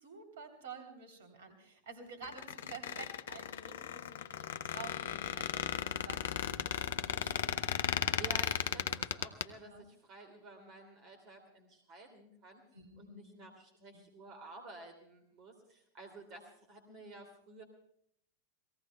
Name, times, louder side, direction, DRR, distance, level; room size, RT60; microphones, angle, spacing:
voice 1, 0.0-8.4 8.7-9.0 9.6-9.9 12.7-13.3 13.9-14.1, right 4 dB, 60° right, 6 dB, 3.2 m, -51 dB
Squeak, 2.2-9.5, left 10 dB, 60° left, 0.6 m, -36 dB
voice 2, 8.2-12.6 13.0-17.6, right 2 dB, 35° right, 5 dB, 2.6 m, -52 dB
29.5 x 18.0 x 2.3 m, 0.69 s
figure-of-eight pair, 90°, 0 cm